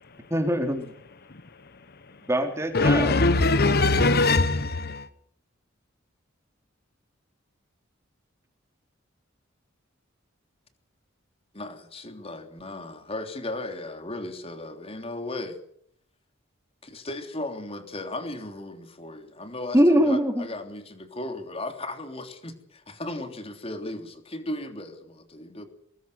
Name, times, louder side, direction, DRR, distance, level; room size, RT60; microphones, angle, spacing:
voice 1, 0.3-0.9 2.3-3.2 19.7-20.5, equal, 15° right, 3.7 m, -22 dB
voice 2, 2.7-5.1, left 2 dB, 55° left, 1.1 m, -21 dB
voice 3, 11.5-15.6 16.8-25.6, left 2 dB, 30° left, 3.3 m, -36 dB
23.0 x 20.5 x 8.1 m
head